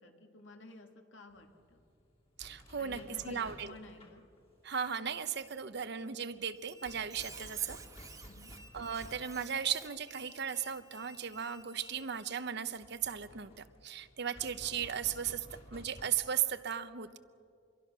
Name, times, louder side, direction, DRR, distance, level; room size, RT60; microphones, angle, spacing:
voice 1, 0.0-1.8 2.8-4.2 8.2-8.6, left 3 dB, 75° left, 4 dB, 2.3 m, -52 dB
sound 1, 1.3-16.1, equal, 30° left, 2.3 m, -56 dB
voice 2, 2.4-3.8 4.6-7.8 8.7-15.5 15.7-17.2, right 8 dB, 60° right, 12 dB, 0.9 m, -36 dB
Squeak, 6.6-12.5, right 3 dB, 20° right, 1.6 m, -53 dB
26.0 x 23.0 x 6.2 m, 2.4 s
head